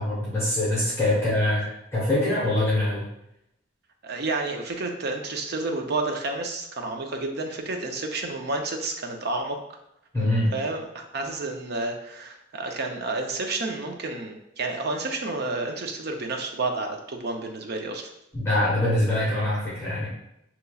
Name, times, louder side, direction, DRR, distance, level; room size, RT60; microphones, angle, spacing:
voice 1, 0.0-1.6 1.9-3.1 10.1-10.5 18.3-20.1, left 1 dB, 15° left, -9 dB, 1.2 m, -24 dB
voice 2, 4.0-9.6 10.5-18.1, right 2 dB, 60° right, 3 dB, 0.6 m, -30 dB
6.6 x 3.0 x 2.3 m, 0.84 s
head